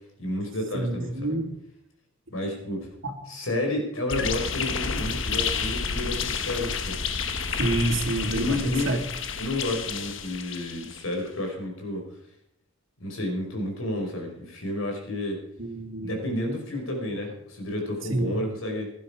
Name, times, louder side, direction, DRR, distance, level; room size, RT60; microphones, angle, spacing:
voice 1, 0.2-1.4 2.3-2.9 3.3-7.0 8.3-8.9 9.4-12.0 13.0-15.4 16.0-18.9, left 1 dB, 80° left, 2 dB, 5.1 m, -31 dB
voice 2, 0.7-1.5 2.4-2.5 3.0-3.1 7.5-9.0 15.6-16.1 18.1-18.4, right 2 dB, 70° right, 3 dB, 2.6 m, -28 dB
sound 1, 4.1-11.1, left 5 dB, 65° left, 1.2 m, -30 dB
16.5 x 11.5 x 5.0 m, 0.76 s
head